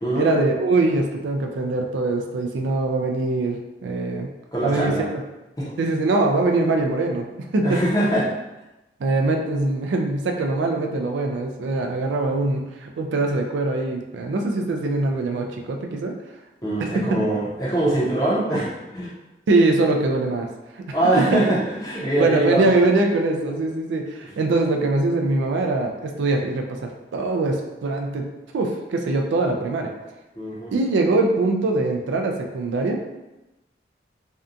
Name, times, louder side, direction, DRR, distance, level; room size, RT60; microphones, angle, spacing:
voice 1, 0.1-4.3 4.6-4.9 5.8-7.3 7.5-7.8 9.0-16.1 16.9-17.0 19.5-20.5 20.7-21.0 22.2-28.3 28.5-29.9 30.7-33.0, right 2 dB, 85° right, 2 dB, 0.3 m, -22 dB
voice 2, 4.5-5.1 5.6-5.7 7.6-8.3 16.6-19.1 20.9-22.8 30.3-30.7, right 1 dB, 20° left, -7 dB, 0.6 m, -23 dB
2.7 x 2.2 x 2.4 m, 1.0 s
head